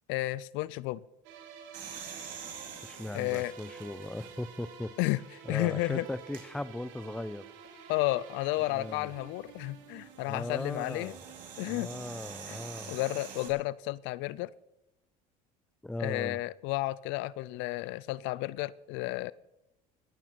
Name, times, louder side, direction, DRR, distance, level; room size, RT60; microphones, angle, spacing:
voice 1, 0.1-1.0 3.1-3.5 5.0-5.2 5.5-6.1 7.9-11.1 11.6-11.9 12.5-12.6 12.9-14.5 16.0-19.3, left 19 dB, 70° left, 21 dB, 0.5 m, -32 dB
sound 1, 1.2-13.1, right 7 dB, 70° right, 2.5 m, -51 dB
sound 2, 1.7-4.7 5.2-5.3 6.2-6.5 8.6-13.5, right 7 dB, 90° right, 3.9 m, -47 dB
voice 2, 2.8-4.9 5.5-7.4 8.7-9.1 10.3-11.2 11.7-13.0 15.8-16.4, left 1 dB, 5° left, 17 dB, 0.6 m, -38 dB
20.5 x 9.0 x 5.9 m, 0.96 s
supercardioid pair, 80°, 20 cm